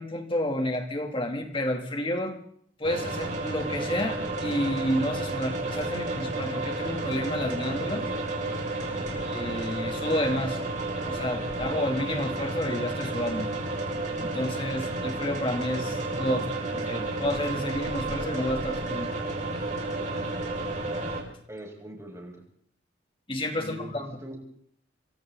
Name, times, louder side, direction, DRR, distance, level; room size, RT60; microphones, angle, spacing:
voice 1, 0.0-2.4 2.8-8.1 9.2-10.6 11.0-13.5 14.2-16.5 16.7-19.1 23.3-24.1, left 1 dB, 30° left, 3 dB, 3.2 m, -30 dB
sound 1, 2.8-21.2, right 2 dB, 40° right, 6.6 m, -31 dB
voice 2, 8.9-9.2 21.5-22.3 23.5-24.4, right 1 dB, 15° right, 0 dB, 6.1 m, -42 dB
28.0 x 24.5 x 4.1 m, 0.64 s
head